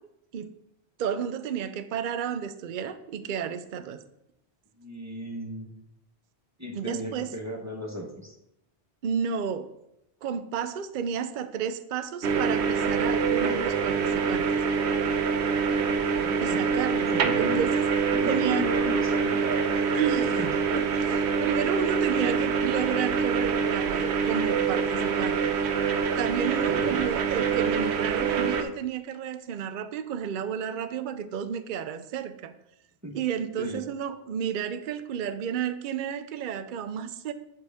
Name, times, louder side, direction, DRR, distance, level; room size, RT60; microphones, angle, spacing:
voice 1, 1.0-4.0 6.7-7.3 9.0-9.7 10.2-14.5 16.4-17.8 18.2-18.7 19.9-20.5 20.7-25.7 26.2-32.5 33.1-37.3, right 8 dB, 55° right, 10 dB, 0.7 m, -32 dB
voice 2, 4.8-5.7 6.6-8.4 16.0-17.6 18.1-19.7 20.4-20.5 26.7-27.0 33.0-33.2 33.6-33.8, left 1 dB, 15° right, 1 dB, 1.1 m, -35 dB
sound 1, 12.2-28.6, right 6 dB, 85° right, 1.0 m, -25 dB
7.7 x 7.6 x 3.5 m, 0.82 s
omnidirectional pair, 1.1 m